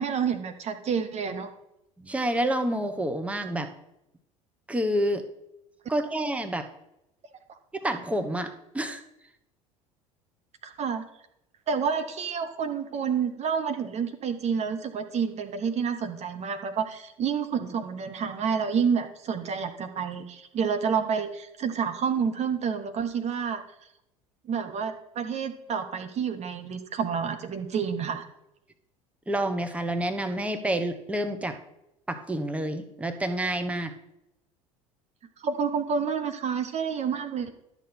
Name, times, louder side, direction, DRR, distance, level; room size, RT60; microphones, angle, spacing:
voice 1, 0.0-1.5 10.6-11.0 11.7-23.6 24.5-28.3 35.4-37.5, right 6 dB, 40° right, 8 dB, 1.0 m, -29 dB
voice 2, 2.0-3.7 4.7-5.2 5.9-6.7 7.7-9.0 29.3-31.6 32.1-33.9, right 1 dB, 5° right, 7 dB, 1.1 m, -28 dB
12.0 x 6.7 x 4.4 m, 0.84 s
hypercardioid pair, 70°, 18 cm